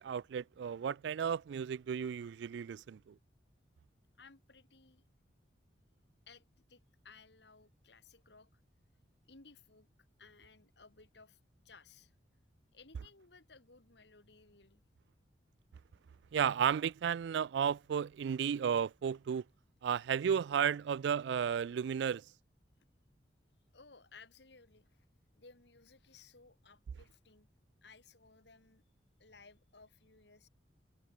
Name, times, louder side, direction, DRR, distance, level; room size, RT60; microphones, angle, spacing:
voice 1, 0.0-3.1 16.3-19.4 19.8-22.2, right 7 dB, 70° right, 0.3 m, -33 dB
voice 2, 4.2-5.0 6.3-8.6 9.3-9.9 10.2-11.4 11.6-12.1 12.7-14.8 22.8-22.9 23.7-25.1 25.4-27.5 27.8-28.8 29.2-30.5, left 4 dB, 70° left, 2.3 m, -60 dB
head